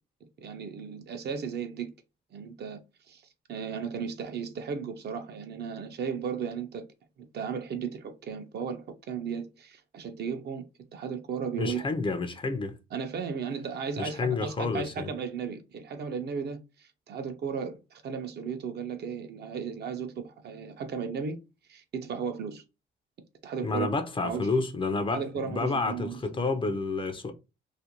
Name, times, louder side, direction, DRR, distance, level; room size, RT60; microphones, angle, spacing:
voice 1, 0.4-1.9 2.3-3.2 3.5-6.9 7.3-10.7 10.9-11.9 12.9-21.4 21.7-22.6 23.4-23.9 24.2-24.5 25.1-26.2, right 6 dB, 55° right, 0.5 m, -35 dB
voice 2, 11.6-12.7 14.0-15.1 23.6-27.3, left 3 dB, 25° left, 0.4 m, -30 dB
2.5 x 2.1 x 2.9 m
cardioid pair, 90°, 20 cm